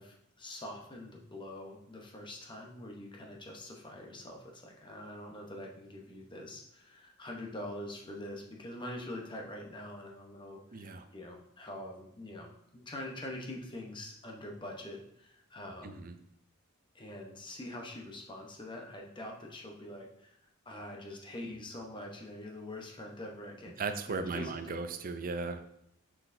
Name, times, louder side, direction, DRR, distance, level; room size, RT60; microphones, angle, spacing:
voice 1, 0.0-16.0 16.9-20.4 20.6-24.8, left 1 dB, 20° left, 0 dB, 0.9 m, -44 dB
voice 2, 10.7-11.0 15.8-16.1 23.8-25.6, right 4 dB, 40° right, 8 dB, 0.5 m, -36 dB
6.4 x 5.9 x 2.6 m, 0.74 s
head